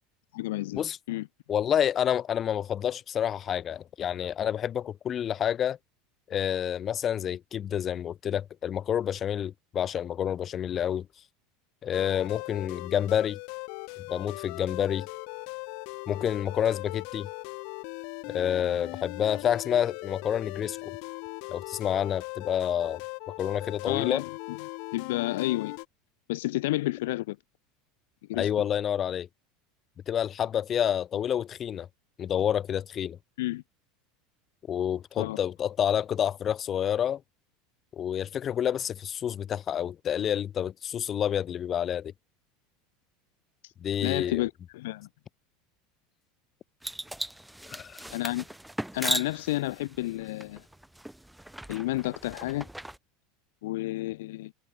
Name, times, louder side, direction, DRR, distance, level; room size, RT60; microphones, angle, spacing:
voice 1, 0.3-0.8 1.1-1.3 23.9-24.6 24.9-25.7 26.3-27.4 28.3-28.5 33.4-33.6 35.2-35.4 43.6-43.7 44.0-45.1 48.1-48.4 48.9-50.6 51.7-52.7 53.6-54.5, left 18 dB, 85° left, 2.9 m, -30 dB
voice 2, 1.5-5.8 6.3-11.1 11.8-13.4 14.1-15.1 16.1-17.3 18.3-21.0 21.5-23.0 23.3-24.2 28.3-29.3 30.1-31.9 32.2-33.2 34.7-37.2 37.9-42.1 43.8-44.4 47.7-48.0, left 9 dB, 25° left, 2.2 m, -28 dB
sound 1, 11.9-25.9, left 40 dB or more, 55° left, 1.8 m, -39 dB
sound 2, 46.8-53.0, right 1 dB, 5° right, 4.8 m, -37 dB
supercardioid pair, 170°, 0 cm